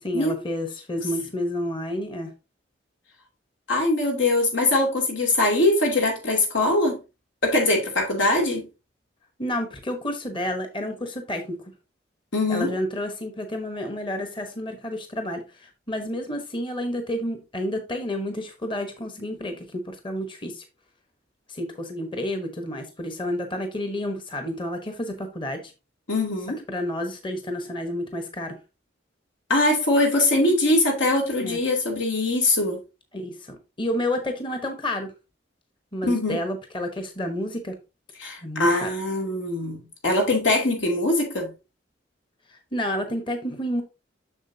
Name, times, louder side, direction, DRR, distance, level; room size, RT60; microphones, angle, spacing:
voice 1, 0.0-2.3 9.4-11.7 12.5-20.6 21.5-25.7 26.7-28.6 31.4-31.6 33.1-35.1 35.9-37.8 38.4-38.9 42.5-43.8, left 1 dB, 25° left, 1.0 m, -30 dB
voice 2, 3.7-7.0 7.4-8.7 12.3-12.7 26.1-26.6 29.5-32.8 36.1-36.4 38.2-41.5, left 2 dB, 85° left, 2.6 m, -22 dB
7.3 x 6.5 x 2.7 m
head